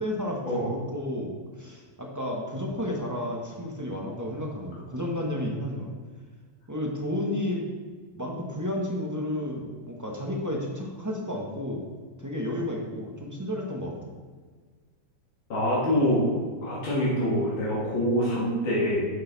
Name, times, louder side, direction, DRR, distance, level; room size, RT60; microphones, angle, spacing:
voice 1, 0.0-0.4 0.7-5.9 6.7-7.6 8.1-11.8 12.2-14.1, left 1 dB, 15° right, -1 dB, 0.8 m, -32 dB
voice 2, 15.5-19.1, equal, 80° left, -8 dB, 2.8 m, -25 dB
10.5 x 6.5 x 4.0 m, 1.5 s
omnidirectional pair, 2.1 m